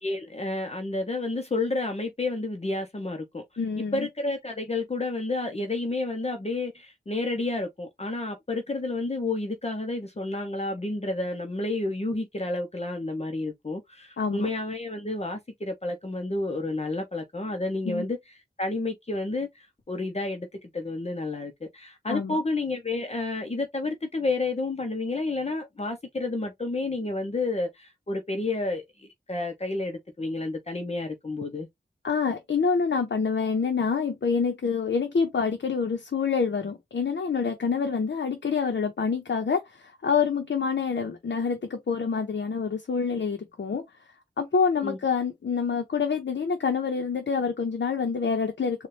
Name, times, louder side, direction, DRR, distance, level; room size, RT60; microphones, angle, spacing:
voice 1, 0.0-3.4 3.8-18.2 18.6-31.7 44.8-45.0, left 2 dB, 35° left, 0.8 m, -30 dB
voice 2, 3.6-4.1 14.2-14.5 17.9-18.1 22.1-22.4 32.0-43.8 44.4-48.9, left 5 dB, 80° left, 0.8 m, -27 dB
4.1 x 2.4 x 3.3 m
wide cardioid pair, 75°, 18 cm